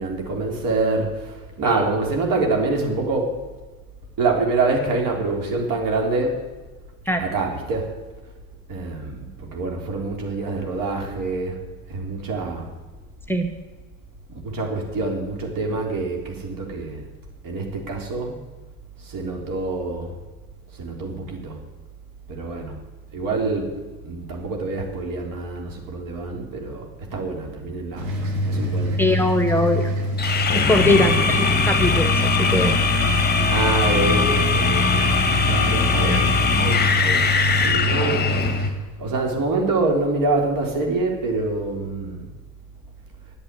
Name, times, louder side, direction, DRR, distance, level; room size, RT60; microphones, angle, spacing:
voice 1, 0.0-3.4 4.2-6.4 7.2-7.9 8.7-11.6 11.9-12.7 14.3-17.0 17.4-18.3 19.0-20.1 20.8-21.6 22.3-22.8 23.1-23.7 24.0-29.2 30.8-31.6 33.5-36.3 36.6-37.3 37.6-38.3 39.0-42.2, right 3 dB, 55° right, 1 dB, 4.0 m, -26 dB
sound 1, 28.0-38.7, equal, 70° right, 3.2 m, -25 dB
voice 2, 29.0-29.8 30.5-32.1 32.4-32.8 36.0-36.2, left 1 dB, 5° left, 5 dB, 1.2 m, -21 dB
sound 2, 30.2-38.7, left 5 dB, 25° left, 1.5 m, -21 dB
9.4 x 9.1 x 9.9 m, 1.3 s
supercardioid pair, 85°, 40 cm